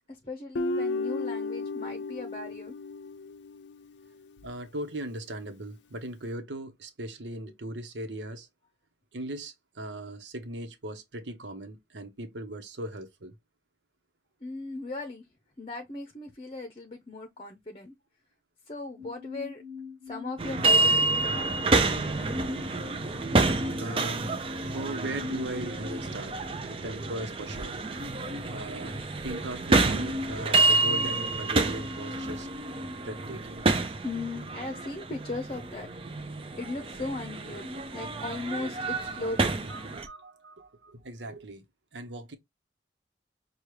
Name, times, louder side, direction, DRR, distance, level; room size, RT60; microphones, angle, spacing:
voice 1, 0.2-2.7 14.4-15.2 15.6-17.9 18.7-19.6 20.1-21.5 34.0-35.9 36.2-39.7, left 2 dB, 30° left, 0.7 m, -38 dB
Guitar, 0.5-3.8, left 3 dB, 80° left, 0.5 m, -33 dB
voice 2, 4.4-8.5 9.1-13.3 23.8-24.3 24.7-26.3 26.7-27.8 28.5-32.5 33.0-33.6 38.9-41.6 41.9-42.4, right 1 dB, 85° right, 1.0 m, -39 dB
sound 1, 19.0-26.0, equal, 45° right, 1.4 m, -45 dB
sound 2, 20.4-40.1, right 2 dB, 30° right, 0.5 m, -28 dB
6.1 x 2.3 x 3.2 m
head